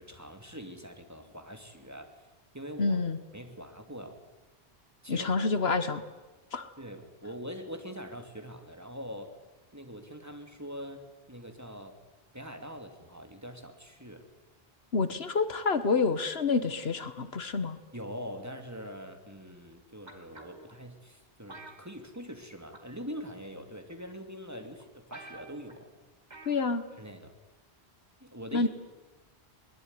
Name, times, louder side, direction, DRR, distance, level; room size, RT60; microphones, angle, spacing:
voice 1, 0.0-2.1 2.5-3.0 3.3-4.2 5.0-5.7 6.8-9.3 9.7-12.0 12.3-14.2 17.9-25.9 27.0-27.3 28.2-28.7, equal, 15° right, 5 dB, 2.6 m, -43 dB
voice 2, 2.8-3.2 5.1-6.0 6.5-6.7 14.9-17.8 26.4-26.8 28.5-28.7, left 4 dB, 75° left, 12 dB, 1.5 m, -28 dB
sound 1, 20.1-20.7 21.5-22.5 22.7-23.0 23.9-24.0 24.5-24.6 24.8-24.9 25.1-25.8 26.3-26.6 26.9-27.0, right 2 dB, 45° right, 2.9 m, -48 dB
22.0 x 20.5 x 9.7 m, 1.2 s
omnidirectional pair, 1.0 m